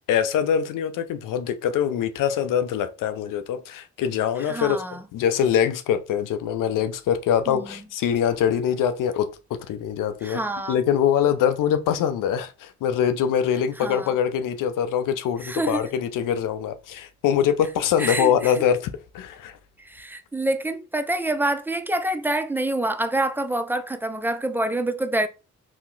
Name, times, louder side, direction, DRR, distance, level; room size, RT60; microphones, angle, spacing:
voice 1, 0.1-4.8 5.1-9.3 9.7-10.4 10.7-18.9 19.1-19.6, left 8 dB, 75° left, 0.5 m, -23 dB
voice 2, 4.4-5.0 7.5-7.7 10.2-10.8 13.8-14.2 15.4-15.8 18.0-18.5 19.8-25.3, right 1 dB, 5° right, 0.3 m, -27 dB
2.8 x 2.0 x 3.8 m
supercardioid pair, 45°, 33 cm